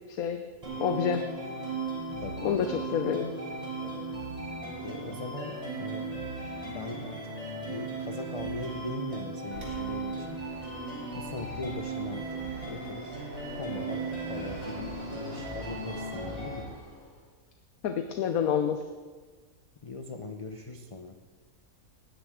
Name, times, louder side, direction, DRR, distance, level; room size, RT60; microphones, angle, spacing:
voice 1, 0.1-0.4 0.8-1.2 2.4-3.3 17.8-18.8, left 8 dB, 80° left, 7 dB, 1.2 m, -28 dB
sound 1, 0.6-16.6, right 3 dB, 25° right, 4.4 m, -37 dB
voice 2, 4.8-6.2 6.7-10.4 11.1-13.2 13.5-16.7 19.8-21.2, left 3 dB, 35° left, 5 dB, 0.6 m, -40 dB
Fixed-wing aircraft airplane, 9.5-17.3, right 1 dB, 70° right, 3.9 m, -46 dB
18.5 x 13.5 x 3.7 m, 1.4 s
omnidirectional pair, 1.5 m